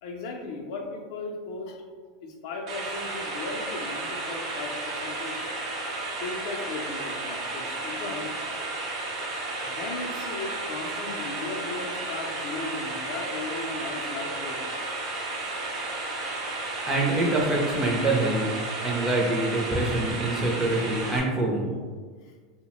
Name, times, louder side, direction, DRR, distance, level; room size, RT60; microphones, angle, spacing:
voice 1, 0.0-1.8 2.2-5.4 6.2-8.3 9.6-14.8 22.2-22.3, left 3 dB, 65° left, 1 dB, 0.4 m, -36 dB
sound 1, 2.7-21.2, right 2 dB, 75° right, 0.6 m, -33 dB
voice 2, 16.9-18.5 18.8-21.7, right 2 dB, 15° right, -1 dB, 0.4 m, -25 dB
2.8 x 2.0 x 2.9 m, 1.5 s
supercardioid pair, 150°, 3 cm